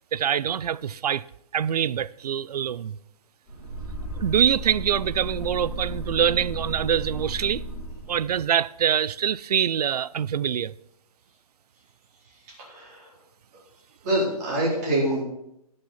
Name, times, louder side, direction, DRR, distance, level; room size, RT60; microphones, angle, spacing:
voice 1, 0.1-1.3 1.5-3.0 4.2-7.6 8.1-10.7, right 9 dB, 85° right, 0.4 m, -24 dB
Monster Exhale, 3.5-8.4, right 1 dB, ahead, 4.1 m, -34 dB
voice 2, 12.6-13.1 14.0-15.2, right 1 dB, 25° right, 4.0 m, -25 dB
16.0 x 6.6 x 4.3 m
hypercardioid pair, 175°, 20 cm